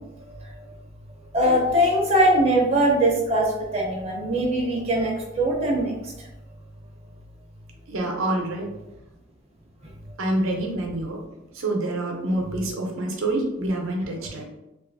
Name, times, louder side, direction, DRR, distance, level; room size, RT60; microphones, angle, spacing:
voice 1, 1.3-5.9, right 1 dB, 30° right, -2 dB, 0.4 m, -21 dB
voice 2, 7.9-8.7 10.2-11.2 11.5-14.4, right 1 dB, 75° right, 1 dB, 0.6 m, -27 dB
2.5 x 2.4 x 2.5 m, 0.95 s
head